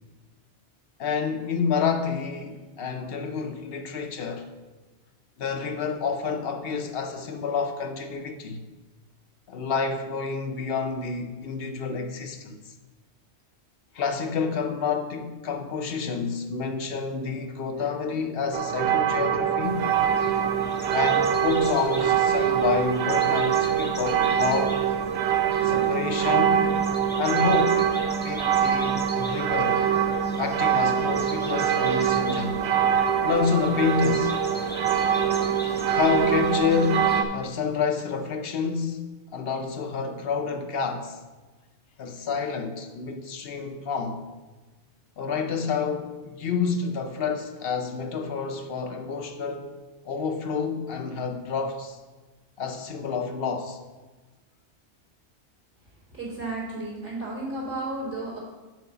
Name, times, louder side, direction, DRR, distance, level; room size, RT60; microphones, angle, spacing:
voice 1, 1.0-4.5 5.4-8.6 9.5-12.6 13.9-19.8 20.9-24.8 25.6-26.7 27.2-27.9 28.2-29.8 30.4-32.6 33.2-34.4 35.9-39.0 39.3-41.2 42.0-44.2 45.2-49.7 50.0-52.0 52.6-53.8, left 5 dB, 65° left, 0.8 m, -28 dB
sound 1, 18.5-37.2, right 8 dB, 70° right, 0.8 m, -24 dB
sound 2, 19.6-37.2, equal, 10° left, 0.7 m, -40 dB
voice 2, 56.1-58.4, right 2 dB, 90° right, 3.4 m, -33 dB
6.2 x 4.7 x 6.7 m
omnidirectional pair, 1.2 m